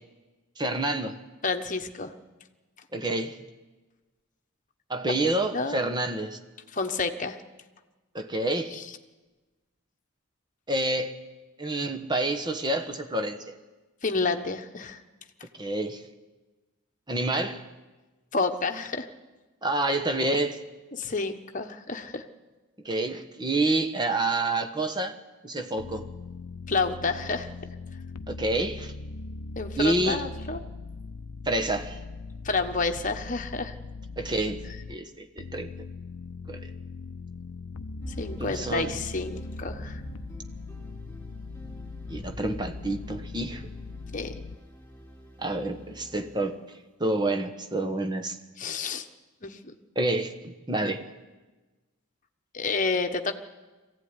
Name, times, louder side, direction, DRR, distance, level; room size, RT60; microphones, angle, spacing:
voice 1, 0.6-1.2 2.9-3.4 4.9-6.4 8.1-8.8 10.7-11.2 11.6-13.5 15.6-16.0 17.1-17.6 19.6-20.6 22.8-25.1 25.4-26.1 28.3-28.9 29.8-30.2 31.4-32.0 34.2-35.7 36.5-36.7 38.4-38.9 42.1-43.7 45.4-46.6 47.0-48.4 49.9-51.0, right 2 dB, 20° right, 6 dB, 1.3 m, -28 dB
voice 2, 1.4-2.1 5.1-5.8 6.7-7.4 8.7-8.8 14.0-15.0 18.3-19.1 20.9-22.2 26.7-27.5 29.5-30.6 32.4-33.7 38.2-40.0 44.1-44.3 48.6-49.1 49.4-49.7 52.5-53.4, left 4 dB, 35° left, 6 dB, 1.2 m, -29 dB
sound 1, 25.8-35.0 35.4-44.6, left 3 dB, 85° left, 0.7 m, -40 dB
sound 2, 38.0-46.7, equal, 10° left, 4.5 m, -46 dB
22.0 x 16.0 x 9.8 m, 1.2 s
head